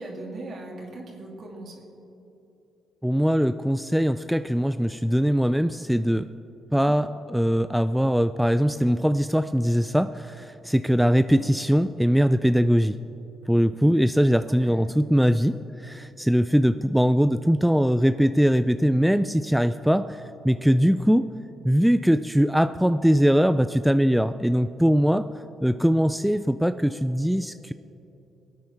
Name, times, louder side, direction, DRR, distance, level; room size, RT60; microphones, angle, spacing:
voice 1, 0.0-1.7 6.7-7.0 11.3-11.4 14.5-14.8, right 2 dB, 55° right, -1 dB, 2.5 m, -39 dB
voice 2, 3.0-6.3 6.7-13.0 13.5-15.6 15.8-20.2 20.4-21.3 21.6-25.3 25.6-27.7, equal, ahead, 11 dB, 0.3 m, -21 dB
22.5 x 9.1 x 3.3 m, 3.0 s
cardioid pair, 90°, 0 cm